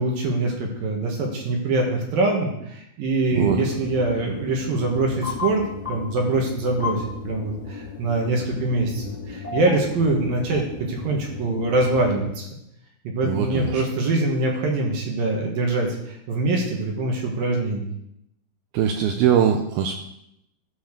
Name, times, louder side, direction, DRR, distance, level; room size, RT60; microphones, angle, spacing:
voice 1, 0.0-5.6 5.9-12.5 13.0-17.9, right 2 dB, 60° right, 0 dB, 3.0 m, -24 dB
sound 1, 3.3-12.1, left 5 dB, 15° left, 1.7 m, -35 dB
voice 2, 13.2-13.8 18.7-20.0, right 8 dB, 80° right, 4 dB, 2.3 m, -21 dB
13.5 x 5.8 x 6.6 m, 0.79 s
omnidirectional pair, 5.3 m